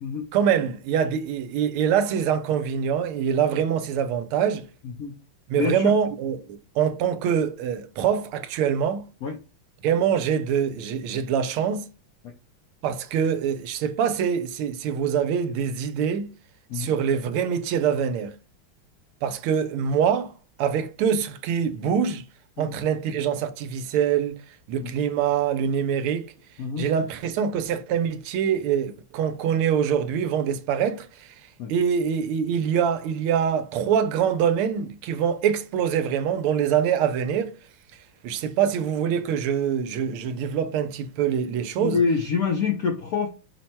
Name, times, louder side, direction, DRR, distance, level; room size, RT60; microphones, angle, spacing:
voice 1, 0.3-4.6 5.5-9.1 9.8-11.8 12.8-16.3 16.7-18.4 19.2-20.3 20.6-22.2 22.6-24.4 24.7-26.2 26.8-31.3 31.7-37.5 38.2-42.0, right 8 dB, 85° right, 1.5 m, -24 dB
voice 2, 5.6-5.9 9.2-9.4 16.7-16.9 22.6-22.7 24.8-24.9 26.6-26.8 31.6-31.7 41.8-43.3, left 5 dB, 75° left, 0.8 m, -26 dB
5.7 x 2.2 x 4.3 m
omnidirectional pair, 2.4 m